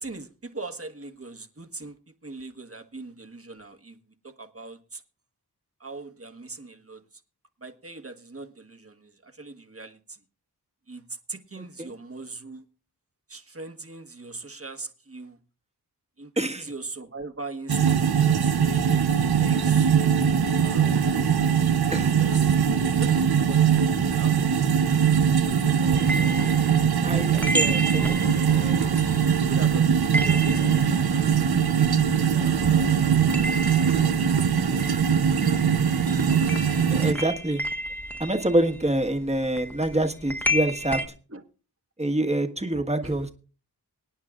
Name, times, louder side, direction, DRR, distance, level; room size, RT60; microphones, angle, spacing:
voice 1, 0.0-4.0 4.2-5.0 5.8-7.0 7.6-10.2 10.9-12.6 13.3-15.4 16.2-18.6 19.3-20.3 20.6-21.2 22.2-22.6 22.8-24.3 24.7-24.8 29.1-32.1 41.3-41.4 42.7-43.1, right 3 dB, 35° right, 1.4 m, -41 dB
voice 2, 11.6-11.9 16.4-16.7 21.9-22.2 27.0-28.8 36.9-37.6 38.2-41.0 42.0-43.3, right 1 dB, 15° right, 1.5 m, -26 dB
sound 1, 17.7-37.1, right 7 dB, 65° right, 0.9 m, -21 dB
sound 2, 25.8-34.5, left 2 dB, 75° left, 2.1 m, -47 dB
sound 3, 25.9-32.5 32.8-41.1, equal, 5° left, 1.4 m, -32 dB
24.5 x 9.5 x 2.5 m
wide cardioid pair, 50°, 40 cm